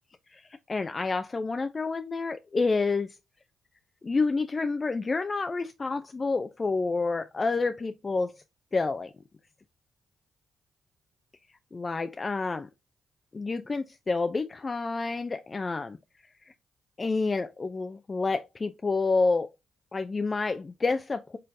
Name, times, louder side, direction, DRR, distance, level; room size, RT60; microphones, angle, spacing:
voice 1, 0.3-3.2 4.0-8.4 8.7-9.1 11.7-12.7 13.3-16.0 16.5-16.6 17.0-19.5 19.9-21.4, left 3 dB, 35° left, 0.4 m, -29 dB
4.5 x 3.1 x 2.6 m
supercardioid pair, 50°, 0 cm